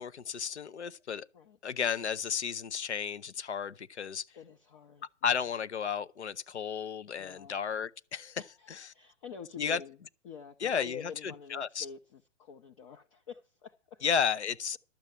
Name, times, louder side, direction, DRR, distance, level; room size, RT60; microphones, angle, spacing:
voice 1, 0.0-1.3 1.6-4.3 5.2-8.4 9.6-9.8 10.6-11.9 14.0-14.8, left 7 dB, 65° left, 0.7 m, -33 dB
voice 2, 4.3-5.0 7.2-7.6 8.4-10.0 10.2-14.0, left 6 dB, 25° left, 0.6 m, -47 dB
12.0 x 7.3 x 7.1 m
figure-of-eight pair, 115°, 37 cm